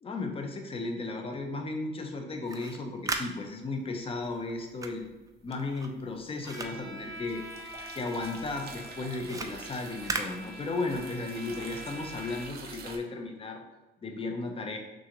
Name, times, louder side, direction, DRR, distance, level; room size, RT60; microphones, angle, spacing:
voice 1, 0.0-5.1 5.4-7.4 7.9-13.6 14.0-14.8, left 3 dB, 30° left, 4 dB, 0.7 m, -35 dB
sound 1, 2.3-7.8 8.2-11.1, right 3 dB, 15° right, 0.4 m, -39 dB
sound 2, 4.9-5.4 5.8-13.0, right 4 dB, 55° right, 0.7 m, -47 dB
Bowed string instrument, 6.4-12.8, equal, 60° left, 1.2 m, -46 dB
6.1 x 2.5 x 3.0 m, 1.1 s
cardioid pair, 125°, 20 cm